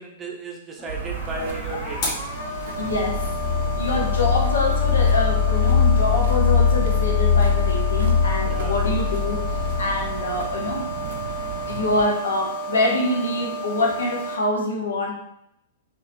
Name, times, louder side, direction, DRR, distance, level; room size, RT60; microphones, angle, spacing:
voice 1, 0.0-2.3 3.9-4.1 8.4-8.8, right 2 dB, 20° right, 1 dB, 0.7 m, -35 dB
sound 1, 0.8-14.3, right 1 dB, 40° left, 1.2 m, -32 dB
sound 2, 0.9-12.1, right 5 dB, 60° right, 0.5 m, -36 dB
voice 2, 2.8-3.3 3.8-10.9 11.7-15.1, left 2 dB, 70° left, 0 dB, 0.9 m, -25 dB
sound 3, 2.8-10.5, left 7 dB, 5° left, 1.1 m, -21 dB
4.1 x 2.7 x 2.6 m, 0.75 s
figure-of-eight pair, 105°, 0 cm